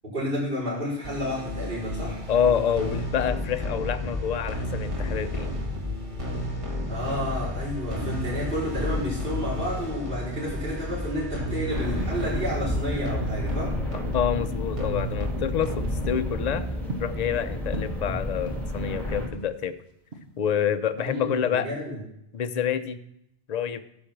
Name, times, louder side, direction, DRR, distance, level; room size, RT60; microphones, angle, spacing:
voice 1, 0.0-2.2 6.9-13.7 21.0-22.0, equal, 50° right, -10 dB, 5.2 m, -31 dB
sound 1, 1.0-16.5, left 1 dB, 30° right, 1.7 m, -32 dB
voice 2, 2.3-5.5 14.1-16.7 17.0-19.7 20.4-21.7 22.3-23.0 23.5-23.8, left 8 dB, 45° left, 10 dB, 0.6 m, -27 dB
sound 2, 7.8-9.1 9.5-10.8 11.2-11.6 12.0-13.1 13.4-14.0 14.4-14.7 15.2-15.4 15.8-17.4 17.7-18.9 19.2-20.7 21.0-21.3, right 2 dB, 65° right, 1.6 m, -39 dB
sound 3, 11.7-19.3, equal, ahead, 2.2 m, -31 dB
13.0 x 5.3 x 5.9 m, 0.79 s
omnidirectional pair, 1.1 m